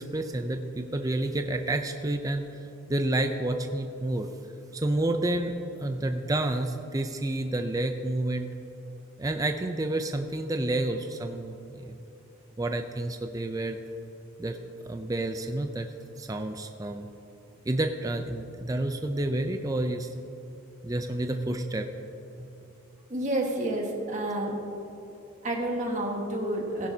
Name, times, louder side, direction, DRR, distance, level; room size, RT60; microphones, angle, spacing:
voice 1, 0.0-4.3 4.7-5.5 5.8-8.5 9.2-12.0 12.6-13.8 14.4-14.6 14.8-15.9 16.2-17.1 17.7-20.1 20.8-21.9 22.4-22.5, right 1 dB, 15° right, 6 dB, 0.4 m, -29 dB
voice 2, 23.1-24.6 25.4-26.9, right 1 dB, 35° right, 0 dB, 1.5 m, -29 dB
16.0 x 11.0 x 2.8 m, 3.0 s
head